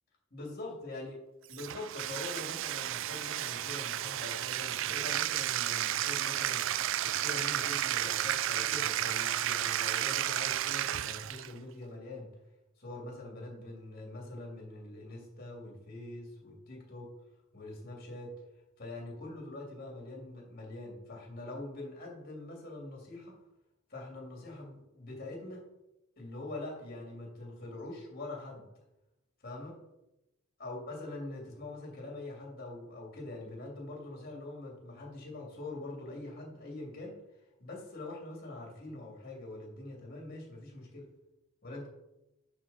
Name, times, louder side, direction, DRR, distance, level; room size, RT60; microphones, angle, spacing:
voice 1, 0.3-1.2 1.5-12.3 12.8-17.1 17.5-18.3 18.8-23.3 23.9-25.6 26.2-28.7 29.4-29.8 30.6-37.2 37.6-41.1 41.6-41.9, left 2 dB, 45° left, -1 dB, 2.7 m, -44 dB
Bathtub (filling or washing), 1.5-11.5, right 12 dB, 65° right, 0.3 m, -32 dB
10.5 x 4.9 x 4.2 m, 0.92 s
head